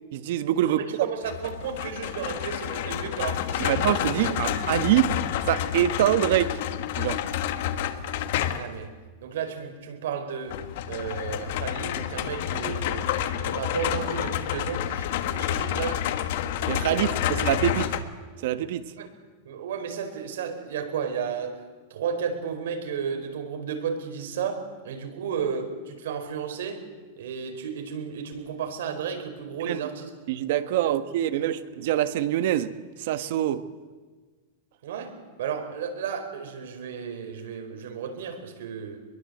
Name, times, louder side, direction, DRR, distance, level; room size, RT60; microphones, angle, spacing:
voice 1, 0.1-0.8 3.6-5.2 5.5-6.6 7.0-7.2 16.7-17.9 18.4-18.9 29.6-29.9 30.3-33.6, right 12 dB, 60° right, 1.4 m, -25 dB
voice 2, 0.6-3.7 4.2-4.3 8.5-8.9 9.2-13.1 13.4-16.1 16.9-17.2 19.0-19.1 19.4-21.6 21.9-26.9 27.2-30.1 30.8-30.9 31.3-31.6 34.8-39.0, right 7 dB, 75° right, 4.6 m, -33 dB
sound 1, 1.2-8.8 10.5-18.0, left 10 dB, 60° left, 1.6 m, -29 dB
25.0 x 22.0 x 8.0 m
supercardioid pair, 160°, 0 cm